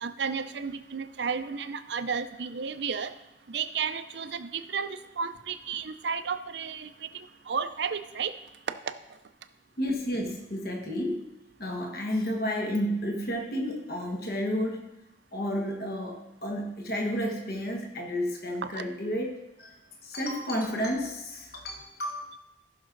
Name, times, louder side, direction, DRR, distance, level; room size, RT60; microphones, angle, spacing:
voice 1, 0.0-3.1 3.5-8.3 18.7-18.8, right 6 dB, 65° right, 10 dB, 0.6 m, -33 dB
voice 2, 9.8-11.3 11.6-14.9 15.3-19.7 20.0-22.3, equal, 55° left, 2 dB, 1.5 m, -31 dB
14.5 x 6.1 x 3.9 m, 0.90 s
head